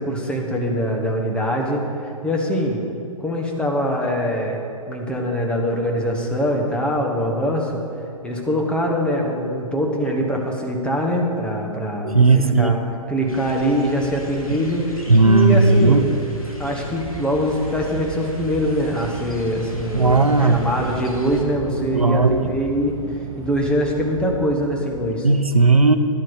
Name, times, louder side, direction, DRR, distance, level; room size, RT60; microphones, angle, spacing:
voice 1, 0.0-2.9 3.2-4.6 4.9-7.8 8.2-12.8 13.1-16.2 16.6-22.9 23.4-25.3, equal, 5° left, 0 dB, 1.2 m, -23 dB
voice 2, 12.0-12.7 15.1-16.0 19.9-20.6 21.9-22.4 25.2-26.0, right 3 dB, 90° right, 9 dB, 0.8 m, -15 dB
sound 1, 13.3-21.4, equal, 85° left, 2.4 m, -38 dB
Train / Subway metro underground, 13.9-25.1, right 3 dB, 15° right, 1.4 m, -38 dB
11.0 x 9.0 x 6.3 m, 2.6 s
figure-of-eight pair, 120°, 18 cm